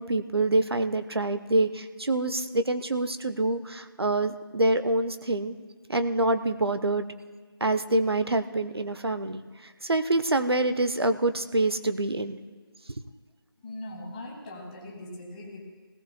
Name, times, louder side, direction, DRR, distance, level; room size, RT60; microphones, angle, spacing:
voice 1, 0.0-5.5 5.9-7.1 7.6-12.4, right 2 dB, 75° right, 10 dB, 0.8 m, -26 dB
voice 2, 13.6-15.6, left 1 dB, 20° left, 0 dB, 1.7 m, -40 dB
20.5 x 18.0 x 2.2 m, 1.5 s
figure-of-eight pair, 160°, 13 cm